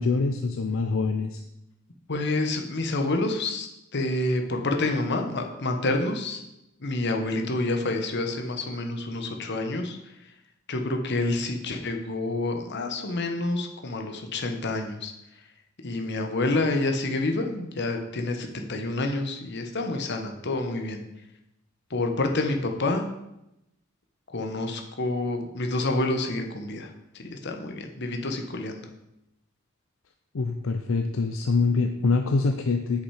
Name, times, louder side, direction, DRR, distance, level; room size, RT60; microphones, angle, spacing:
voice 1, 0.0-1.4 30.3-33.0, left 4 dB, 75° left, 6 dB, 0.6 m, -25 dB
voice 2, 2.1-6.4 6.8-10.0 10.7-15.1 15.8-21.0 21.9-23.1 24.3-28.9, left 2 dB, 60° left, 4 dB, 1.1 m, -28 dB
8.3 x 6.8 x 4.8 m, 0.87 s
head